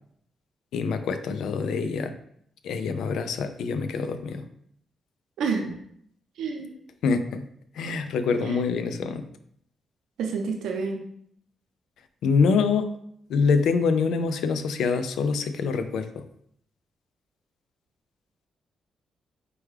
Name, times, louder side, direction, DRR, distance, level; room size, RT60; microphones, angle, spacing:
voice 1, 0.7-2.1 2.6-4.4 7.0-7.4 7.8-9.2 12.2-12.9 13.3-16.2, left 5 dB, 80° left, 10 dB, 0.3 m, -25 dB
voice 2, 5.4-5.7 6.4-6.8 8.4-8.6 10.2-11.0, right 5 dB, 85° right, 2 dB, 0.7 m, -29 dB
4.5 x 2.2 x 3.2 m, 0.69 s
cardioid pair, 85°, 0 cm